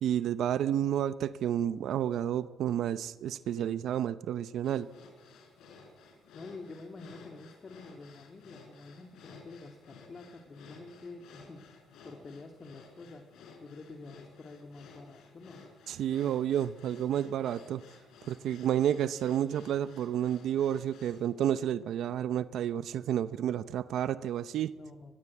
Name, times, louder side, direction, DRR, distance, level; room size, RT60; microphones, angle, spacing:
voice 1, 0.0-4.9 15.9-17.8 18.3-24.7, right 10 dB, 75° right, 14 dB, 0.7 m, -30 dB
sound 1, 4.6-21.3, left 4 dB, 80° left, 5.4 m, -55 dB
voice 2, 6.3-13.2 13.6-15.6 24.8-25.1, left 3 dB, 40° left, 5 dB, 2.3 m, -48 dB
23.0 x 21.0 x 8.5 m, 1.3 s
cardioid pair, 90°, 0 cm